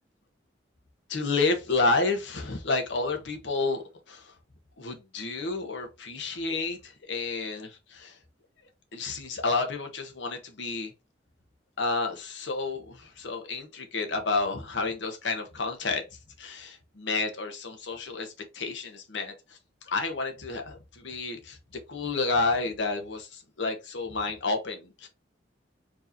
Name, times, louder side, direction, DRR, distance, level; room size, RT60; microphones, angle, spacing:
voice 1, 1.1-4.3 4.8-8.2 8.9-10.9 11.8-16.0 16.4-19.3 19.9-21.6 21.9-25.1, left 3 dB, 80° left, 1.0 m, -30 dB
4.5 x 3.0 x 2.7 m
head